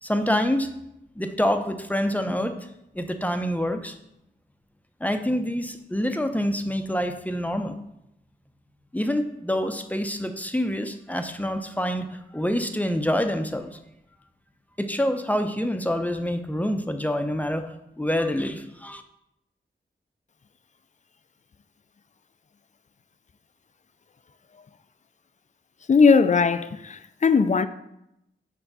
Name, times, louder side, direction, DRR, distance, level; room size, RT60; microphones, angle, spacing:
voice 1, 0.0-0.7 1.2-2.6 2.9-3.9 5.0-7.8 8.9-12.1 12.3-13.8 14.8-19.0, equal, 10° left, 0.7 m, -26 dB
voice 2, 25.9-27.7, left 5 dB, 40° left, 0.5 m, -19 dB
5.8 x 4.6 x 4.1 m
cardioid pair, 40°, 20 cm